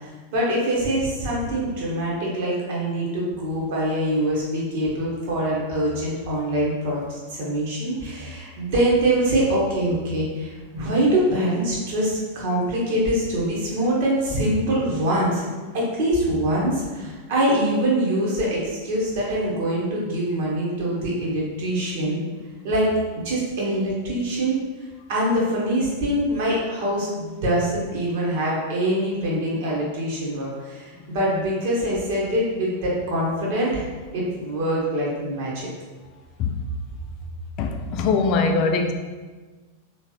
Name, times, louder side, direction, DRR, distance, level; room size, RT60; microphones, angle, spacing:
voice 1, 0.0-15.4 15.7-22.2 22.6-22.9 23.2-24.6 25.1-33.8 34.1-35.7, right 1 dB, 50° right, -4 dB, 1.3 m, -24 dB
voice 2, 37.6-38.9, left 4 dB, 40° left, 4 dB, 0.3 m, -22 dB
3.7 x 3.1 x 3.0 m, 1.4 s
figure-of-eight pair, 90°, 0 cm